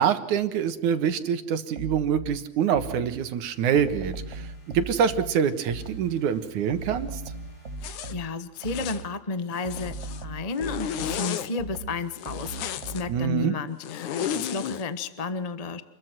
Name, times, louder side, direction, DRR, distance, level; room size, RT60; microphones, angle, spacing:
voice 1, 0.0-7.2 13.1-13.5, right 8 dB, 85° right, 10 dB, 2.9 m, -25 dB
sound 1, 1.7-3.3 3.7-6.2 6.7-9.2 9.6-13.4, right 2 dB, 35° right, 1.2 m, -39 dB
sound 2, 2.7-8.9, right 2 dB, 30° left, 7.8 m, -54 dB
Zipper (clothing), 7.8-8.1 8.6-9.0 9.5-10.2 10.6-11.5 12.2-13.0 13.8-14.8, left 9 dB, 85° left, 2.7 m, -33 dB
voice 2, 7.8-9.9 10.2-15.8, left 4 dB, 55° left, 11 dB, 0.4 m, -32 dB
28.0 x 22.0 x 6.2 m, 0.87 s
omnidirectional pair, 3.4 m